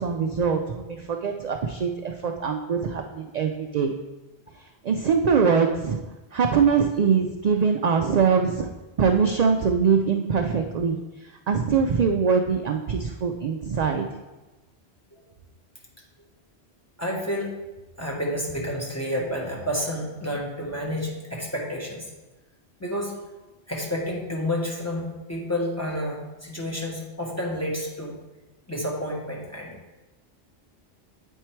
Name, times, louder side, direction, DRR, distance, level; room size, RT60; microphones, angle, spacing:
voice 1, 0.0-4.0 4.8-6.0 6.3-8.7 9.0-11.0 11.5-14.0, right 6 dB, 60° right, 4 dB, 0.4 m, -23 dB
voice 2, 17.0-17.6 18.0-22.1 22.8-23.2 23.7-28.2 28.7-29.7, equal, 15° left, -3 dB, 1.2 m, -30 dB
8.1 x 4.5 x 4.5 m, 1.1 s
omnidirectional pair, 1.1 m